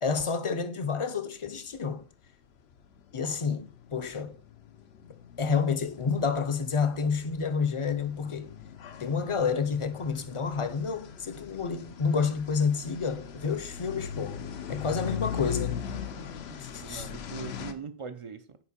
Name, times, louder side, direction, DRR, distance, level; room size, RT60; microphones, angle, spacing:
voice 1, 0.0-2.0 3.1-4.4 5.4-8.5 9.0-15.8 16.6-17.1, left 5 dB, 40° left, 0.5 m, -29 dB
sound 1, 2.2-2.3 2.6-17.7, left 8 dB, 90° left, 0.9 m, -40 dB
voice 2, 16.5-18.6, right 6 dB, 50° right, 0.4 m, -41 dB
7.5 x 4.4 x 4.2 m
omnidirectional pair, 1.0 m